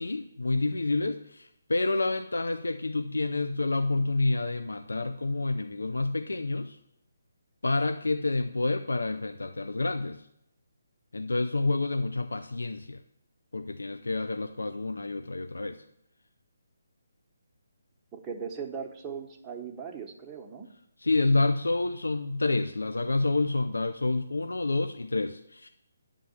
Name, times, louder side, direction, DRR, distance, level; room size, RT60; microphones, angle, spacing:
voice 1, 0.0-6.8 7.6-10.2 11.1-13.0 13.5-15.8 21.0-25.7, left 2 dB, 80° left, 8 dB, 0.5 m, -28 dB
voice 2, 18.1-20.7, right 6 dB, 15° right, 0 dB, 1.0 m, -38 dB
9.6 x 3.7 x 7.1 m, 0.77 s
figure-of-eight pair, 145°, 0 cm